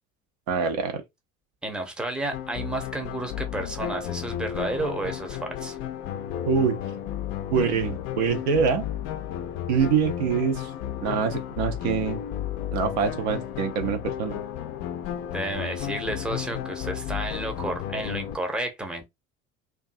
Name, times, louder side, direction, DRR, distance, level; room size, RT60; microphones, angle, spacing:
voice 1, 0.5-1.0 6.5-6.8 7.5-8.9 9.7-10.7 11.0-12.2 12.7-14.4, right 6 dB, 55° right, 0.6 m, -25 dB
voice 2, 1.6-5.8 15.3-19.1, right 1 dB, ahead, 0.7 m, -31 dB
sound 1, 2.3-18.4, left 10 dB, 40° left, 0.4 m, -33 dB
2.5 x 2.3 x 2.5 m
figure-of-eight pair, 60°, 40 cm